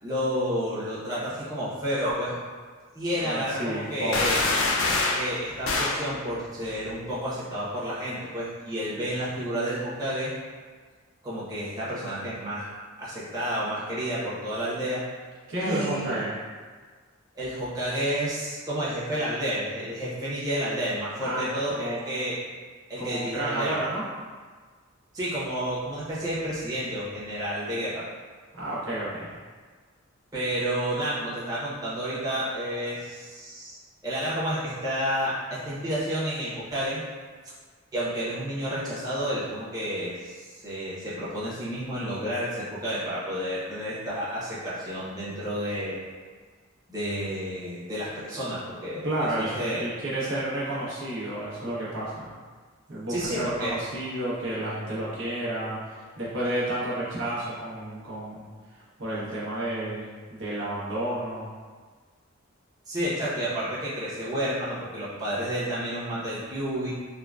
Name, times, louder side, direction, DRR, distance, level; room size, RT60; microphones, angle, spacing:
voice 1, 0.0-2.4 2.9-4.4 5.1-10.3 11.2-12.7 13.0-15.0 15.6-16.2 17.4-22.4 22.9-23.8 25.1-28.1 30.3-33.8 34.0-37.0 37.9-46.0 46.9-49.1 49.4-49.9 53.1-53.7 62.9-66.9, equal, 20° right, -10 dB, 0.9 m, -30 dB
voice 2, 3.2-4.4 15.5-16.3 21.2-22.0 23.0-24.0 28.5-29.3 49.0-52.3 52.9-61.5, right 1 dB, 65° right, -8 dB, 1.0 m, -31 dB
sound 1, 4.1-5.3 5.7-6.0, left 3 dB, 75° left, 0.4 m, -24 dB
3.7 x 2.1 x 2.4 m, 1.5 s
head